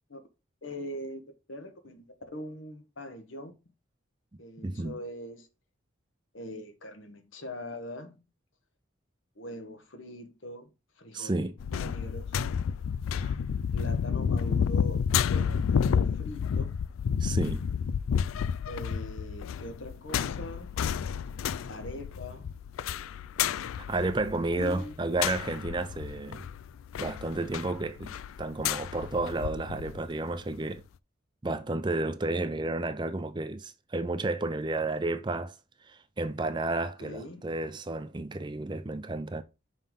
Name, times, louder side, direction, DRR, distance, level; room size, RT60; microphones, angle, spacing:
voice 1, 0.6-1.2 1.5-3.5 4.4-5.5 6.3-8.2 9.4-10.7 11.0-12.4 13.7-16.8 18.7-20.8 21.7-22.5 24.6-24.9 37.0-37.5, left 1 dB, 70° left, 1.3 m, -42 dB
voice 2, 4.6-5.0 11.1-11.5 13.2-13.4 17.2-17.6 23.9-26.4 27.0-30.8 31.4-35.6 35.8-39.4, right 2 dB, 20° right, 0.5 m, -32 dB
sound 1, 11.6-30.0 30.4-30.5, left 7 dB, 85° left, 0.3 m, -31 dB
5.6 x 5.5 x 3.7 m
head